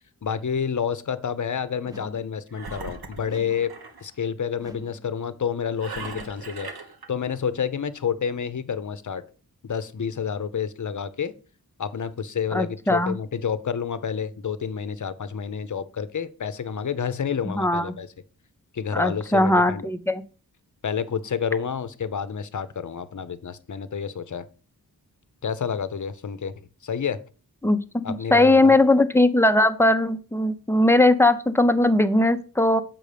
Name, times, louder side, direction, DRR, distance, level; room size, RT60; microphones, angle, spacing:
voice 1, 0.2-3.7 4.0-6.7 7.1-9.2 9.6-11.3 11.8-18.1 18.7-19.9 20.8-24.5 25.4-26.5 26.8-27.2 28.0-28.8, left 7 dB, 55° left, 14 dB, 0.8 m, -29 dB
sound 1, 1.8-2.4 3.2-3.8 4.6-5.1 6.0-6.5, left 1 dB, 10° right, 1.0 m, -45 dB
Engine, 2.5-4.1 5.8-7.1, right 4 dB, 80° right, 1.3 m, -38 dB
voice 2, 12.5-13.2 17.4-18.0 18.9-20.2 27.6-32.8, left 2 dB, 5° left, 9 dB, 0.7 m, -19 dB
7.6 x 5.2 x 5.1 m, 0.37 s
wide cardioid pair, 85°, 37 cm